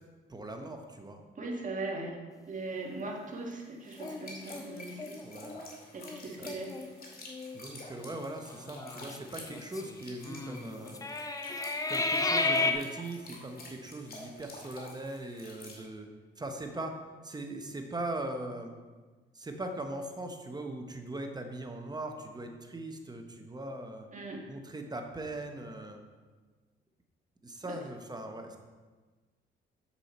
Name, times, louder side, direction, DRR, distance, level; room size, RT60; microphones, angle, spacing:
voice 1, 0.3-1.2 5.2-5.6 6.4-6.5 7.5-11.0 11.9-16.1 16.4-18.7 19.3-24.1 24.5-26.0 27.4-28.6, right 2 dB, 20° right, 4 dB, 1.0 m, -40 dB
voice 2, 1.4-2.2 2.5-5.2 5.9-6.7 24.1-24.5 27.6-27.8, right 2 dB, 40° right, 0 dB, 1.7 m, -39 dB
sound 1, 3.8-15.9, left 2 dB, 50° left, 2.2 m, -49 dB
sound 2, 4.0-5.7 6.1-6.2 6.5-6.9 7.3-7.6 8.5-12.7, left 3 dB, 15° left, 0.7 m, -33 dB
7.6 x 7.1 x 4.3 m, 1.4 s
cardioid pair, 90°, 20 cm